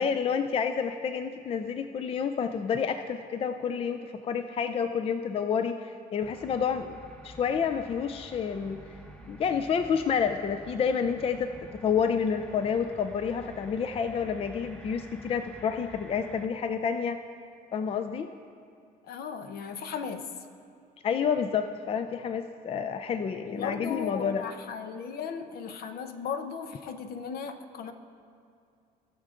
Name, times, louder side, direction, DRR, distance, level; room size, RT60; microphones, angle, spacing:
voice 1, 0.0-7.0 7.2-8.8 9.3-11.5 11.8-17.2 17.7-18.3 21.0-24.4, left 6 dB, 35° left, 9 dB, 0.4 m, -29 dB
sound 1, 6.2-16.5, equal, 5° left, 0.9 m, -49 dB
voice 2, 19.1-20.3 23.4-27.9, left 6 dB, 65° left, 9 dB, 0.8 m, -36 dB
18.5 x 6.5 x 3.7 m, 2.4 s
cardioid pair, 110°, 17 cm